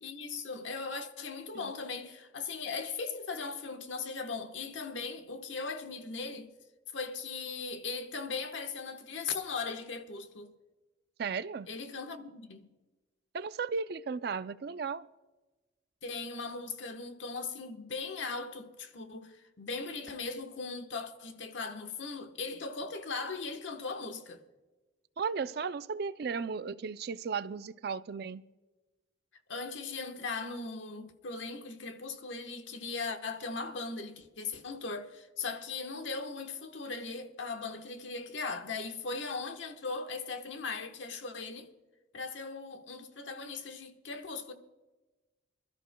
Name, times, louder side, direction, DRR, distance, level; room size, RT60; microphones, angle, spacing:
voice 1, 0.0-6.5 6.9-10.5 11.7-12.7 16.0-24.4 29.5-41.7 42.1-44.5, left 4 dB, 80° left, 1.2 m, -39 dB
voice 2, 11.2-11.7 13.3-15.1 25.2-28.4, right 5 dB, 55° right, 0.4 m, -35 dB
26.0 x 13.0 x 2.2 m
head